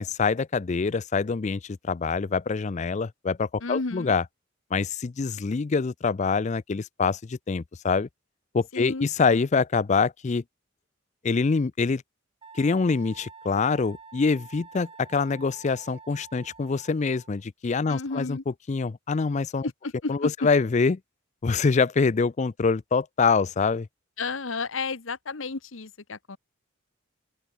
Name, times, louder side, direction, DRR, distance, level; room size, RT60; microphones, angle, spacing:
voice 1, 0.0-4.2 4.7-8.1 8.5-10.4 11.2-12.0 12.5-19.7 20.1-21.0 21.4-23.9, left 4 dB, 35° left, 0.4 m, -25 dB
voice 2, 3.6-4.1 8.7-9.4 17.9-18.4 19.6-20.3 24.2-26.4, left 3 dB, 70° left, 1.2 m, -32 dB
Wind instrument woodwind instrument, 12.4-17.4, right 4 dB, 25° right, 3.1 m, -48 dB
open air
head